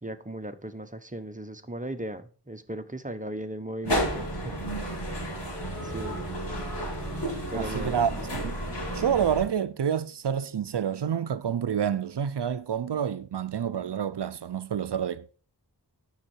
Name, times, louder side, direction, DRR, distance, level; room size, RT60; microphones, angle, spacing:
voice 1, 0.0-4.5 5.8-6.2 7.5-8.0, right 1 dB, 20° right, 1.1 m, -37 dB
sound 1, 3.8-9.4, right 1 dB, 85° left, 4.7 m, -32 dB
sound 2, 5.5-9.9, left 1 dB, 40° left, 3.2 m, -43 dB
voice 2, 7.5-8.6 8.9-15.4, right 8 dB, 80° right, 0.6 m, -28 dB
9.6 x 6.6 x 4.5 m
wide cardioid pair, 45°, 41 cm